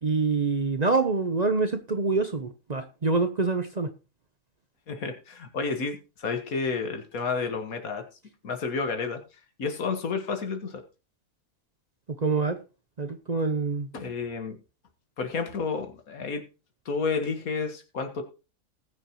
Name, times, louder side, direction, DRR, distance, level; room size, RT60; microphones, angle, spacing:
voice 1, 0.0-3.9 12.2-12.6 13.0-13.9, right 3 dB, 35° right, 8 dB, 0.7 m, -26 dB
voice 2, 4.9-8.0 8.4-9.2 9.6-10.8 13.9-14.6 15.2-16.4 16.9-18.2, left 4 dB, 80° left, 6 dB, 1.9 m, -30 dB
19.5 x 6.6 x 3.0 m, 0.31 s
omnidirectional pair, 1.5 m